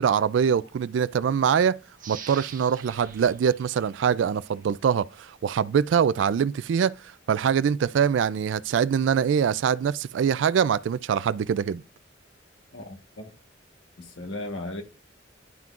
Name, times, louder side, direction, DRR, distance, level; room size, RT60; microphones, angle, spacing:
voice 1, 0.0-1.8 2.1-7.0 7.3-11.8, right 7 dB, 65° right, 0.3 m, -23 dB
sound 1, 2.0-4.7 5.1-5.2, right 7 dB, 45° right, 0.9 m, -45 dB
voice 2, 12.7-13.2 14.0-14.8, left 2 dB, 75° left, 1.3 m, -36 dB
10.5 x 5.8 x 2.4 m
head